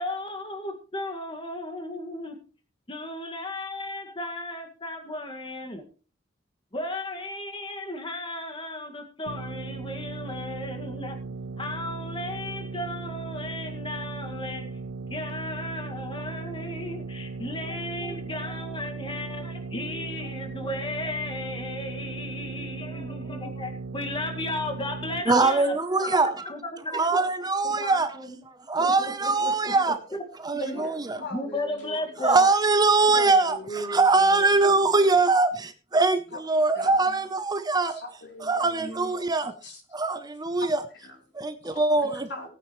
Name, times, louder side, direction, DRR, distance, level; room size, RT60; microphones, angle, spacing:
voice 1, 0.0-2.4 2.9-5.8 6.7-11.2 11.6-14.7 15.1-25.7 26.0-26.1 26.5-27.2 27.6-28.4 28.8-29.7 30.1-30.2 30.7-30.9 31.3-32.5 33.0-33.2, left 2 dB, 25° left, 2.0 m, -35 dB
sound 1, 9.3-25.2, right 4 dB, 80° right, 0.5 m, -37 dB
voice 2, 25.3-26.4 26.9-28.2 28.7-30.0 30.4-31.2 32.2-38.0 38.4-39.5 39.9-40.8 41.3-42.3, right 3 dB, 20° right, 0.8 m, -22 dB
voice 3, 30.5-32.3 33.1-35.2 36.3-36.4 36.7-37.1 37.9-39.3 39.6-39.8 40.6-42.5, equal, 65° left, 3.4 m, -40 dB
18.0 x 9.4 x 3.2 m
head